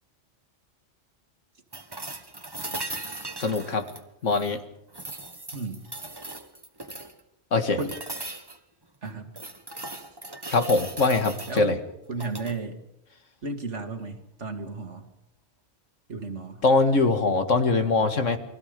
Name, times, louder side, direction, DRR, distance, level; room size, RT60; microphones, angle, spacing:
sound 1, 1.7-4.6 4.9-7.2 7.8-8.6 9.0-11.6 12.1-12.6 14.6-14.7, right 2 dB, 20° right, 1.4 m, -38 dB
voice 1, 3.4-3.9 4.2-4.6 7.5-7.8 10.5-11.8 16.6-18.4, left 3 dB, 85° left, 7 dB, 2.3 m, -22 dB
voice 2, 5.5-5.8 7.7-8.0 9.0-9.3 11.5-11.8 12.1-12.8 13.4-15.1 16.1-16.6, right 3 dB, 70° right, 5 dB, 2.6 m, -34 dB
29.5 x 22.0 x 5.3 m, 0.80 s
omnidirectional pair, 1.2 m